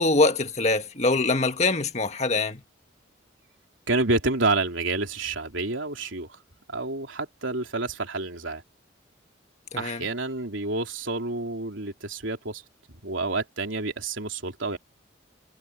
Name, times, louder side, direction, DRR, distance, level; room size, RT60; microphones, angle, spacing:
voice 1, 0.0-2.6 9.7-10.1, left 3 dB, 35° left, 1.7 m, -23 dB
voice 2, 3.9-6.3 6.7-8.6 9.8-12.6 13.0-14.8, right 3 dB, 80° right, 3.3 m, -28 dB
head